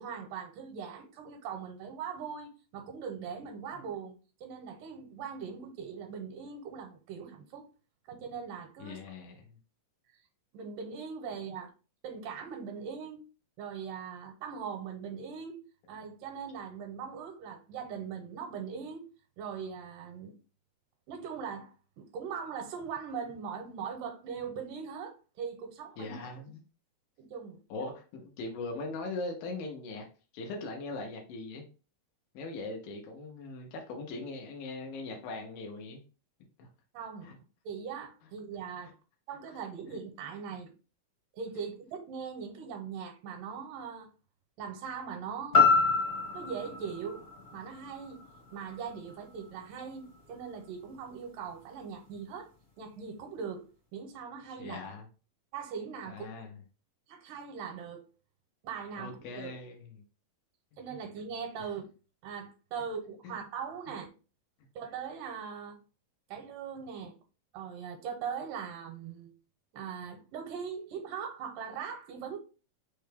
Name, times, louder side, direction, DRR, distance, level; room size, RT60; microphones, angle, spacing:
voice 1, 0.0-7.7 8.1-9.0 10.5-11.7 12.0-13.2 13.6-15.6 15.9-19.1 19.4-20.4 21.1-26.2 27.2-27.6 36.9-37.3 37.7-39.0 39.3-40.7 41.4-44.1 44.6-45.7 46.3-48.2 48.5-52.5 52.8-54.8 55.5-56.5 57.1-58.1 58.6-59.6 60.8-61.9 62.2-64.1 64.8-65.8 66.3-67.2 67.5-69.3 69.7-72.4, right 6 dB, 80° right, 2.3 m, -40 dB
voice 2, 8.8-9.4 26.0-26.6 27.7-30.1 30.3-31.6 32.3-36.0 36.6-36.7 37.2-37.3 39.9-40.0 54.6-55.1 56.1-56.5 59.0-60.0 63.2-63.3, left 3 dB, 85° left, 2.6 m, -40 dB
sound 1, 45.5-49.6 50.1-50.2, left 4 dB, 40° left, 0.9 m, -28 dB
5.8 x 2.2 x 3.3 m
omnidirectional pair, 4.0 m